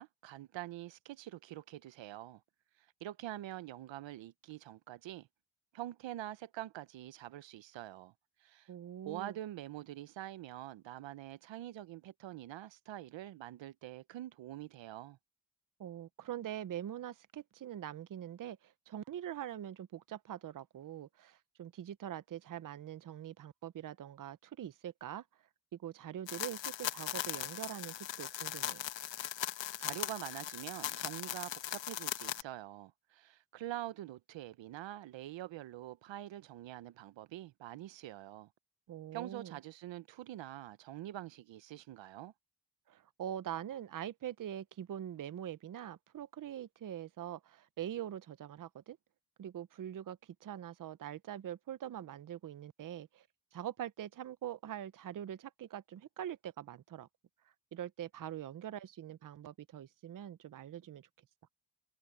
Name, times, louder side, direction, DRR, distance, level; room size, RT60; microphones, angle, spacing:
voice 1, 0.0-2.4 3.0-5.3 5.7-8.1 8.4-8.7 9.1-15.2 29.5-38.5 39.1-42.3, right 14 dB, 85° right, 0.8 m, -45 dB
voice 2, 8.7-9.4 15.8-25.2 25.7-28.8 38.9-39.5 42.9-49.0 49.4-53.3 53.5-57.1 57.7-61.1, right 11 dB, 45° right, 0.7 m, -43 dB
sound 1, 26.3-32.4, left 12 dB, 80° left, 1.2 m, -39 dB
cardioid pair, 105°, 44 cm